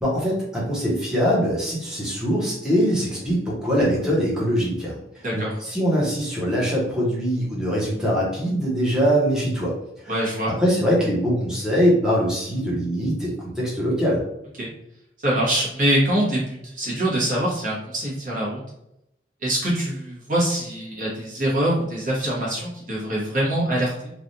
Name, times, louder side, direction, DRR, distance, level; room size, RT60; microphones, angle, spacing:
voice 1, 0.0-9.7 10.0-14.2, equal, 5° right, -6 dB, 1.0 m, -23 dB
voice 2, 10.1-10.5 14.6-14.7 15.2-18.6 19.4-24.1, right 1 dB, 45° right, -5 dB, 1.2 m, -24 dB
3.3 x 2.4 x 2.7 m, 0.80 s
head